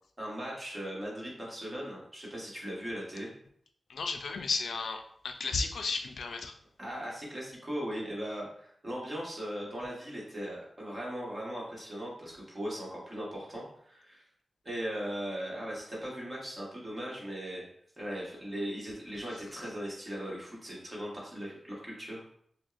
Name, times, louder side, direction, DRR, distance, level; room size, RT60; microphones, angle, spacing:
voice 1, 0.2-3.3 6.8-14.2 14.6-17.7 18.0-22.2, equal, 20° right, -4 dB, 1.2 m, -38 dB
voice 2, 3.9-6.5, left 4 dB, 85° left, 5 dB, 0.4 m, -34 dB
6.1 x 2.2 x 2.4 m, 0.66 s
wide cardioid pair, 155°, 0 cm